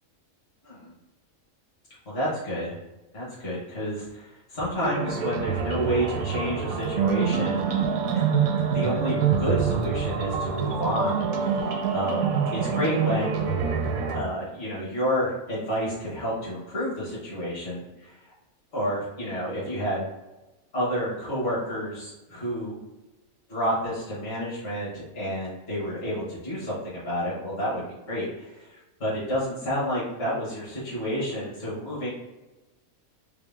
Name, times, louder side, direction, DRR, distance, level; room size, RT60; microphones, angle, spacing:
voice 1, 2.0-2.8 3.1-7.8 8.1-8.2 8.7-13.4 14.1-18.3 18.7-20.0 20.7-22.8 23.5-32.1, equal, 45° left, -9 dB, 1.6 m, -30 dB
sound 1, 4.8-14.2, right 6 dB, 85° right, 1.1 m, -26 dB
3.8 x 3.0 x 3.4 m, 1.1 s
omnidirectional pair, 1.4 m